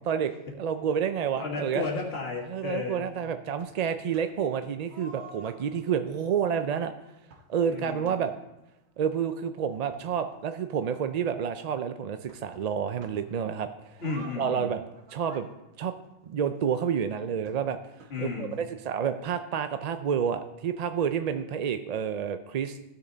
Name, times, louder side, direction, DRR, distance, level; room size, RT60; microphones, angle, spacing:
voice 1, 0.6-1.8 2.5-6.9 7.5-8.3 9.0-13.7 14.4-14.8 15.1-15.5 15.8-15.9 16.3-17.8 18.2-22.8, right 7 dB, 55° right, 9 dB, 0.4 m, -29 dB
voice 2, 1.4-3.1 7.7-8.2 14.0-14.7 18.1-18.6, left 4 dB, 70° left, -1 dB, 1.9 m, -33 dB
sound 1, 3.6-4.5 4.9-8.7 9.4-9.5 9.7-11.7 12.3-13.4 13.9-16.7 17.5-19.4 19.8-19.9 20.1-20.2 20.9-21.0, right 3 dB, 85° right, 1.4 m, -53 dB
14.5 x 6.7 x 3.9 m, 0.97 s
omnidirectional pair, 1.1 m